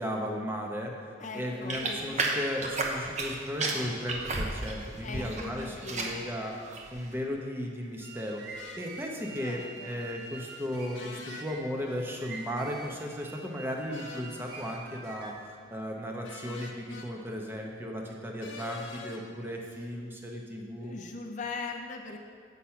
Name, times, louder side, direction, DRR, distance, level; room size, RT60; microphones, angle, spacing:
voice 1, 0.0-21.0, equal, 10° right, 0 dB, 0.9 m, -36 dB
voice 2, 1.2-2.2 5.0-6.2 9.4-10.0 20.7-22.2, left 3 dB, 40° left, 3 dB, 0.5 m, -40 dB
sound 1, 1.7-3.3 3.6-5.4 5.7-6.2 6.7-7.0, right 3 dB, 40° right, 0.9 m, -32 dB
sound 2, 7.8-15.5, right 4 dB, 60° right, 1.2 m, -46 dB
sound 3, 8.6-8.8 10.9-11.5 13.9-14.3 16.2-17.1 18.4-19.2, left 4 dB, 80° left, 0.9 m, -44 dB
8.2 x 5.8 x 5.7 m, 2.2 s
head